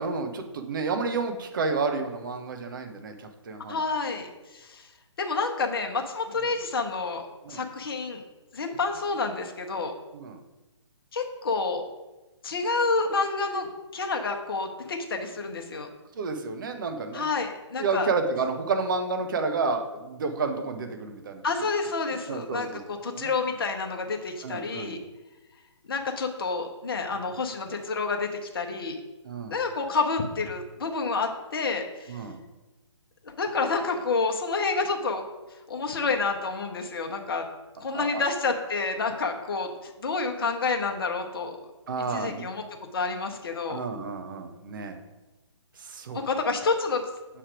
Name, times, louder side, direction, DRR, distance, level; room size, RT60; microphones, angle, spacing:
voice 1, 0.0-3.8 7.4-7.7 10.1-10.4 16.1-17.3 17.8-21.4 22.3-23.3 24.4-25.0 29.2-29.6 32.1-32.4 37.9-38.2 41.9-42.4 43.7-45.0 45.8-46.2, right 4 dB, 40° right, 5 dB, 0.7 m, -30 dB
voice 2, 3.7-4.9 5.2-7.2 7.5-8.2 8.5-9.9 11.1-11.8 12.4-15.9 17.1-18.1 21.4-25.0 25.9-29.0 29.5-32.2 33.2-35.2 35.7-37.5 37.8-41.6 42.1-42.6 42.9-43.8 46.1-47.1, left 4 dB, 50° left, 4 dB, 0.9 m, -29 dB
7.1 x 3.4 x 4.9 m, 1.1 s
figure-of-eight pair, 135°, 16 cm